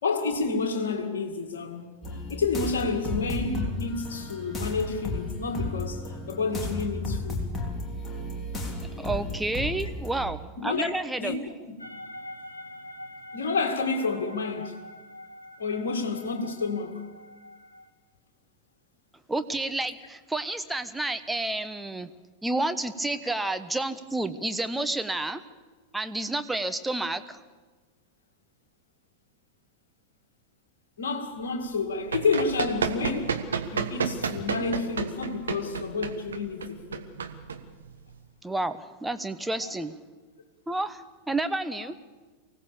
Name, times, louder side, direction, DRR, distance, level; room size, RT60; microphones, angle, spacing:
voice 1, 0.0-2.0 2.3-7.4 10.6-10.9 11.2-11.4 11.7-11.8 13.3-14.8 15.6-17.0 31.0-33.4 33.7-37.1 39.6-39.7, left 4 dB, 60° left, 2.4 m, -29 dB
sound 1, 2.0-10.2, left 2 dB, 15° left, 3.8 m, -33 dB
voice 2, 9.0-11.4 19.3-22.1 22.4-25.4 25.9-27.4 38.4-40.0 40.7-41.9, right 2 dB, 5° right, 1.1 m, -30 dB
sound 2, 11.8-17.9, left 1 dB, 85° left, 1.3 m, -45 dB
Run, 31.7-38.2, right 6 dB, 70° right, 1.5 m, -31 dB
24.5 x 17.0 x 7.0 m
figure-of-eight pair, 90°, 0 cm